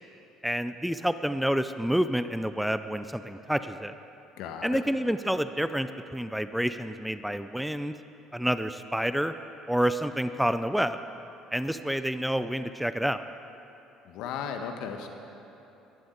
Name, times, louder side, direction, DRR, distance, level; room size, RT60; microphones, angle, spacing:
voice 1, 0.4-4.0 4.6-8.0 8.3-9.3 9.7-11.0 11.5-13.2, equal, 5° right, 11 dB, 0.5 m, -28 dB
voice 2, 4.4-4.8 14.1-15.1, left 7 dB, 65° left, 5 dB, 1.2 m, -35 dB
22.0 x 11.5 x 3.9 m, 3.0 s
hypercardioid pair, 60°, 0 cm